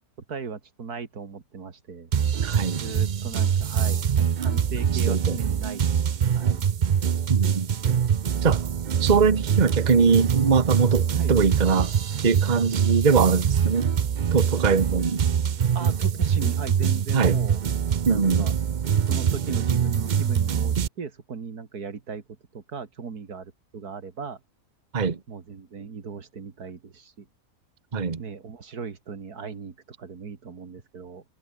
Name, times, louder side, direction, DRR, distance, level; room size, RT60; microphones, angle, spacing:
voice 1, 0.3-2.1 2.8-5.9 6.4-6.6 11.2-11.3 15.7-17.6 18.1-18.5 19.1-24.4 25.3-27.3 28.2-31.2, right 5 dB, 80° right, 2.6 m, -37 dB
sound 1, 2.1-20.9, right 8 dB, 55° right, 0.5 m, -24 dB
voice 2, 2.4-2.8 4.9-5.4 7.3-7.7 8.4-8.7 9.0-11.9 12.2-13.9 14.3-15.2 17.1-17.4 18.0-18.6 24.9-25.2 27.9-28.2, right 5 dB, 30° right, 1.3 m, -22 dB
omnidirectional pair, 1.6 m